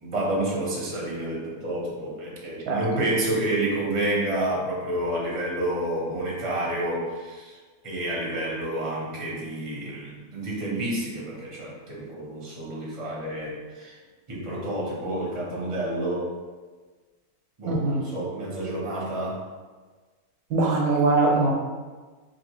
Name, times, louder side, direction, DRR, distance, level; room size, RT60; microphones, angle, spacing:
voice 1, 0.0-7.6 7.8-13.9 14.3-16.3 17.6-19.4, right 1 dB, 25° right, -5 dB, 0.8 m, -29 dB
voice 2, 2.7-3.0 17.7-18.0 20.5-21.5, right 3 dB, 80° right, 0 dB, 1.2 m, -22 dB
4.5 x 2.8 x 3.1 m, 1.4 s
omnidirectional pair, 1.6 m